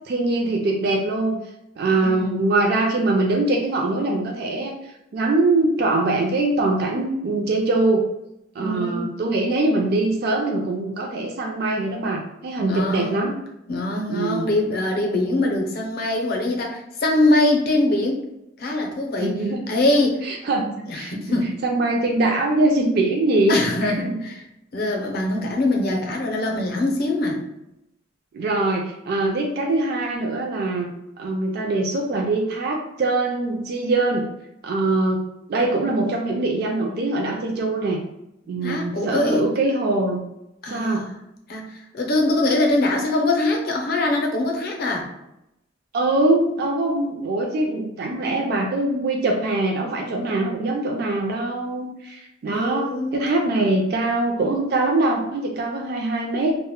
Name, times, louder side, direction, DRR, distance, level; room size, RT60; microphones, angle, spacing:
voice 1, 0.0-1.4 1.8-4.7 5.1-8.0 8.6-13.4 14.1-14.5 19.2-19.6 20.2-20.6 20.9-21.4 21.6-24.2 28.3-30.9 31.2-34.2 34.6-35.2 35.5-38.0 38.5-40.2 40.7-41.1 45.9-56.6, right 2 dB, 55° right, 0 dB, 0.4 m, -23 dB
voice 2, 1.9-2.5 8.6-9.1 12.6-13.2 13.7-18.2 18.6-19.4 19.7-20.2 20.9-21.5 23.5-24.3 24.7-27.4 38.6-39.6 40.6-41.1 41.5-45.1 52.5-53.2, left 2 dB, 55° left, 1 dB, 0.5 m, -23 dB
2.1 x 2.0 x 3.6 m, 0.85 s
head